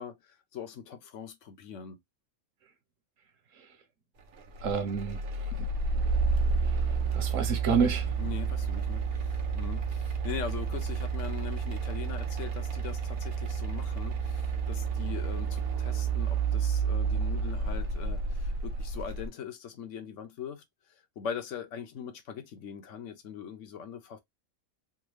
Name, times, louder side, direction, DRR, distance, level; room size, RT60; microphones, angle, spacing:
voice 1, 0.0-2.0 8.2-20.6 21.2-24.2, left 8 dB, 75° left, 1.1 m, -41 dB
sound 1, 4.6-19.3, right 5 dB, 55° right, 0.9 m, -30 dB
voice 2, 4.6-5.7 6.6-6.8 7.1-8.2, right 6 dB, 90° right, 1.2 m, -30 dB
3.6 x 2.3 x 3.1 m
omnidirectional pair, 1.3 m